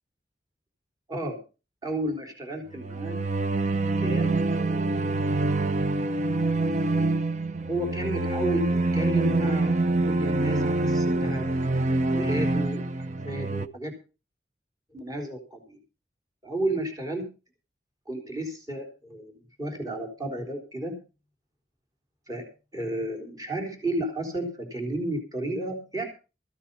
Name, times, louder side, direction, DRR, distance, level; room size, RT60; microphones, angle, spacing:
voice 1, 1.1-1.4 1.8-3.2 4.0-5.3 7.7-9.8 10.0-11.5 12.1-12.8 13.2-13.9 14.9-15.8 16.4-17.3 18.1-19.3 19.6-21.0 22.3-22.5 22.7-26.0, right 1 dB, 20° right, 2 dB, 3.7 m, -32 dB
sound 1, 2.7-13.7, right 2 dB, 40° right, 0.7 m, -26 dB
15.5 x 9.9 x 5.5 m, 0.33 s
head